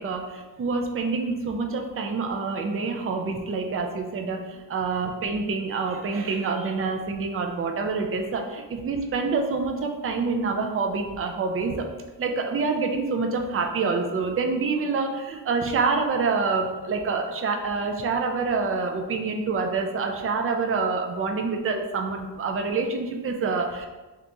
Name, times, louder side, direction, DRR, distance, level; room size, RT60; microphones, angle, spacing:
voice 1, 0.0-11.9 12.2-23.9, right 4 dB, 35° right, 3 dB, 0.4 m, -27 dB
3.9 x 2.8 x 3.5 m, 1.2 s
wide cardioid pair, 170°, 42 cm